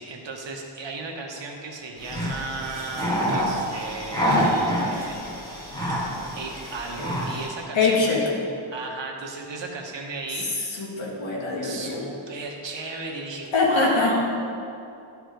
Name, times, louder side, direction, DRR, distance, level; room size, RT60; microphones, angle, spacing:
voice 1, 0.0-5.2 6.3-8.3 8.7-10.5 11.6-14.3, right 3 dB, 60° right, 1 dB, 1.2 m, -35 dB
sound 1, 2.0-7.6, equal, 5° left, 1.8 m, -27 dB
voice 2, 7.7-8.2 10.6-12.0 13.5-14.1, left 3 dB, 65° left, -3 dB, 1.8 m, -23 dB
12.0 x 4.8 x 5.2 m, 2.6 s
wide cardioid pair, 165°, 48 cm